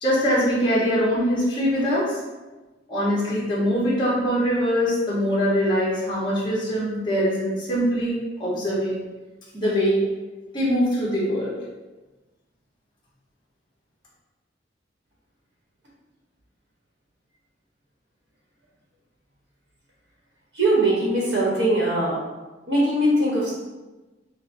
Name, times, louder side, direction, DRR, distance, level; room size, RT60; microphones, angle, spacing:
voice 1, 0.0-2.1 2.9-9.0 9.5-10.0 10.5-11.6, equal, 25° left, -7 dB, 1.1 m, -23 dB
voice 2, 20.5-22.2 22.7-23.5, right 1 dB, 65° right, -6 dB, 1.0 m, -21 dB
5.9 x 2.1 x 2.7 m, 1.2 s
head